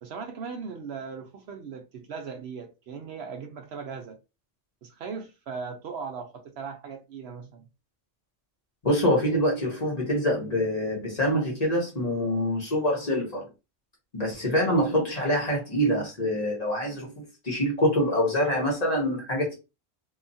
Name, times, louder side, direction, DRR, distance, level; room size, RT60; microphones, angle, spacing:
voice 1, 0.0-4.2 4.8-7.7, right 5 dB, 65° right, 0.8 m, -38 dB
voice 2, 8.8-13.5 14.1-19.6, equal, 35° left, 0.9 m, -25 dB
2.8 x 2.3 x 2.6 m
omnidirectional pair, 1.3 m